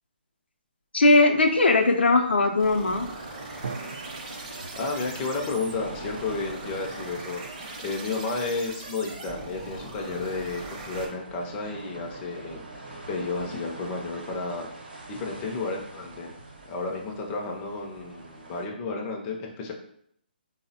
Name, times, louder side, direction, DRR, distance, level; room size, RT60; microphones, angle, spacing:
voice 1, 0.9-3.1, left 2 dB, 90° left, 3 dB, 0.4 m, -19 dB
sound 1, 1.4-18.7, right 2 dB, 70° right, 0.8 m, -45 dB
sound 2, 2.6-11.1, right 2 dB, 35° right, 0.6 m, -40 dB
Drum, 3.6-7.3, right 4 dB, 90° right, 0.4 m, -43 dB
voice 2, 4.8-7.4 7.8-14.7 15.1-16.3 16.7-19.7, left 3 dB, 20° left, 0 dB, 0.4 m, -32 dB
3.3 x 2.0 x 2.7 m, 0.70 s
hypercardioid pair, 155°, 6 cm